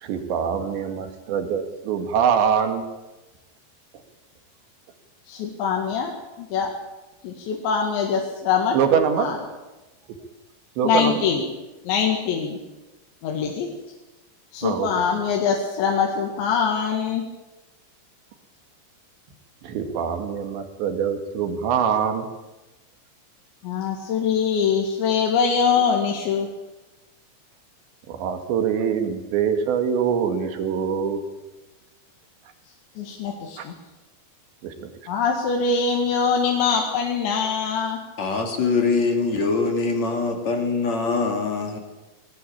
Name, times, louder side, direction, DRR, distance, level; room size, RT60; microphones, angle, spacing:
voice 1, 0.0-2.8 8.7-9.6 10.8-11.3 14.6-14.9 19.6-22.3 28.1-31.2 33.6-33.7 34.6-34.9, right 7 dB, 75° right, 7 dB, 4.3 m, -24 dB
voice 2, 5.3-6.7 7.2-8.8 9.2-9.4 10.8-11.4 11.9-12.6 13.2-13.7 14.5-17.2 23.6-26.5 33.0-33.7 35.1-38.0, left 6 dB, 75° left, 1 dB, 4.2 m, -23 dB
voice 3, 38.2-41.8, left 4 dB, 45° left, 4 dB, 3.3 m, -23 dB
21.5 x 18.5 x 8.7 m, 1.1 s
omnidirectional pair, 5.2 m